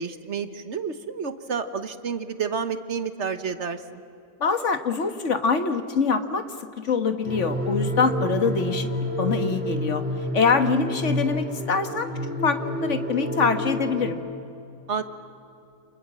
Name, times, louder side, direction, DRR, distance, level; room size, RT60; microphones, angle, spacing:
voice 1, 0.0-3.8 14.9-15.0, right 6 dB, 50° right, 10 dB, 1.3 m, -30 dB
voice 2, 4.4-6.4 6.8-8.9 9.2-10.0 10.3-12.1 12.4-14.2, left 5 dB, 50° left, 8 dB, 1.7 m, -24 dB
sound 1, 7.2-14.1, equal, 5° right, 4.1 m, -29 dB
29.5 x 26.5 x 7.5 m, 2.7 s
omnidirectional pair, 1.7 m